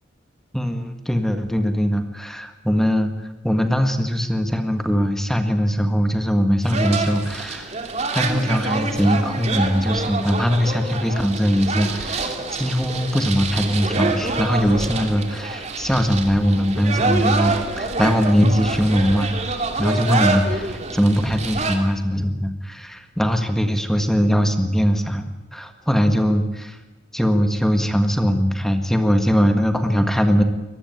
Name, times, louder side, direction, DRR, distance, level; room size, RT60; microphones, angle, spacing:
voice 1, 0.5-3.1 3.4-7.7 8.1-19.4 19.8-25.3 25.5-26.8 27.1-30.4, equal, ahead, 6 dB, 1.7 m, -21 dB
sound 1, 6.6-21.8, right 3 dB, 35° right, 2.9 m, -26 dB
23.5 x 20.0 x 9.5 m, 1.1 s
head